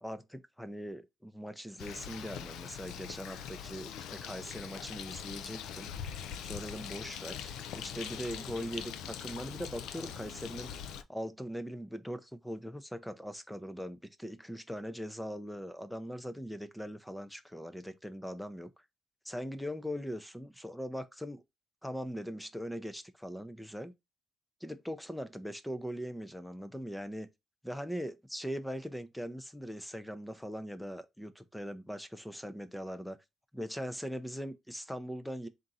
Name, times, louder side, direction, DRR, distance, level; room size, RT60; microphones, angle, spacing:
voice 1, 0.0-5.9 6.4-10.7 11.1-18.7 19.3-21.4 21.8-23.9 24.6-27.3 27.6-33.2 33.5-35.5, equal, 5° left, 0.5 m, -41 dB
Bird, 1.8-11.0, left 8 dB, 90° left, 0.4 m, -42 dB
3.7 x 2.5 x 4.0 m
cardioid pair, 90°, 0 cm